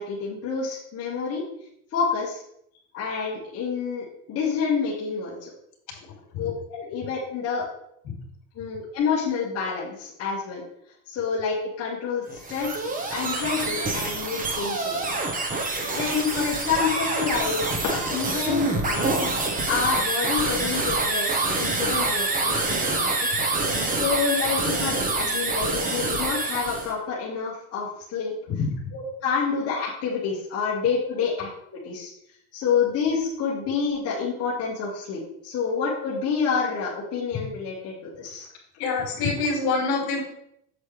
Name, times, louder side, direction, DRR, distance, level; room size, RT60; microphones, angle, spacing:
voice 1, 0.0-1.4 1.9-2.4 2.9-5.5 6.4-7.6 8.6-10.6 11.1-12.8 13.1-15.0 15.9-19.3 19.7-23.3 23.8-28.3 28.9-32.1 32.5-38.5, left 5 dB, 35° left, -6 dB, 1.9 m, -28 dB
sound 1, 12.3-26.9, right 2 dB, 20° right, 1.1 m, -26 dB
voice 2, 38.8-40.2, left 4 dB, 60° left, 0 dB, 3.2 m, -25 dB
8.0 x 7.7 x 3.3 m, 0.72 s
cardioid pair, 155°, 41 cm